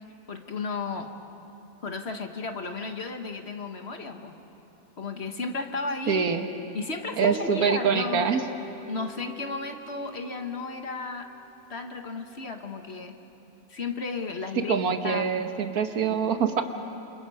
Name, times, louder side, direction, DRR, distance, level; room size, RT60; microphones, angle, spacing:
voice 1, 0.3-1.1 1.8-4.4 5.0-6.3 6.7-8.3 8.9-11.3 11.7-13.1 13.7-15.3, left 4 dB, 45° left, 5 dB, 1.7 m, -34 dB
voice 2, 6.1-6.5 7.2-8.4 14.7-16.6, right 6 dB, 85° right, 6 dB, 1.8 m, -25 dB
Guitar, 7.3-11.1, right 1 dB, 5° right, 2.7 m, -43 dB
28.0 x 27.0 x 5.6 m, 2.8 s
omnidirectional pair, 1.5 m